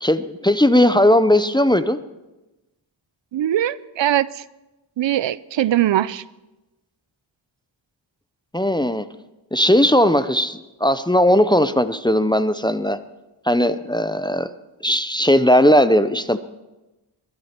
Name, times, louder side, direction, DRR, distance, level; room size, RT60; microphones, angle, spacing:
voice 1, 0.0-2.0 8.5-9.0 9.5-13.0 13.5-14.5 14.8-16.4, left 1 dB, 10° left, 12 dB, 0.5 m, -17 dB
voice 2, 3.3-4.4 5.0-6.2, right 12 dB, 70° right, 18 dB, 0.5 m, -21 dB
22.0 x 11.0 x 4.4 m, 1.0 s
wide cardioid pair, 90°, 47 cm